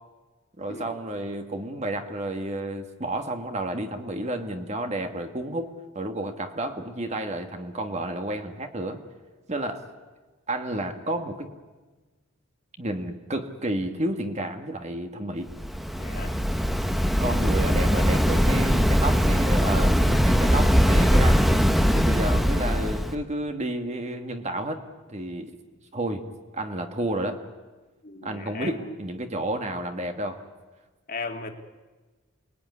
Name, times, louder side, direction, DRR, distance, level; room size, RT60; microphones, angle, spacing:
voice 1, 0.6-9.0 9.5-9.8 10.5-11.5 12.8-15.5 17.2-21.4 21.9-24.8 25.1-25.6 25.9-26.3 26.5-27.4 28.2-30.4, right 1 dB, 30° right, 6 dB, 1.8 m, -31 dB
Waves surf, 15.5-23.1, equal, ahead, 1.1 m, -21 dB
voice 2, 16.0-16.4 28.0-28.9 31.1-31.5, left 3 dB, 40° left, 4 dB, 2.2 m, -36 dB
28.5 x 20.5 x 9.7 m, 1.3 s
head